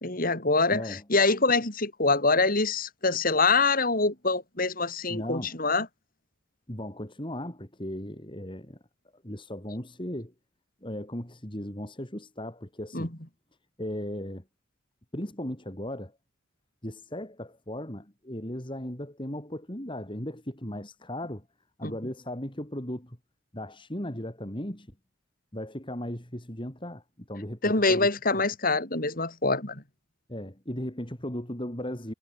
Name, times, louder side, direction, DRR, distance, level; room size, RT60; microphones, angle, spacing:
voice 1, 0.0-5.9 12.9-13.1 21.8-21.9 27.6-29.8, left 3 dB, 45° left, 4.7 m, -25 dB
voice 2, 0.7-1.0 5.1-5.6 6.7-8.8 9.2-10.3 10.8-13.1 13.8-14.4 15.1-16.1 16.8-21.4 21.8-23.2 23.5-24.9 25.5-27.0 27.3-28.1 30.3-32.1, left 1 dB, 25° left, 4.0 m, -36 dB
head